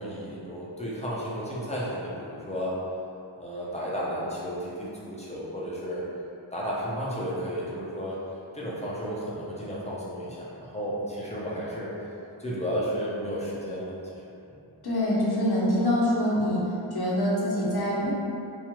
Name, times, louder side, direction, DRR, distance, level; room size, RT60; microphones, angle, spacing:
voice 1, 0.0-2.8 3.4-6.0 6.5-8.2 8.5-11.9 12.4-13.9 14.5-14.6, equal, 15° left, -7 dB, 0.6 m, -33 dB
voice 2, 14.8-16.6 16.9-18.1, left 1 dB, 55° left, -6 dB, 0.8 m, -25 dB
3.5 x 2.0 x 3.0 m, 2.7 s
wide cardioid pair, 65°, 48 cm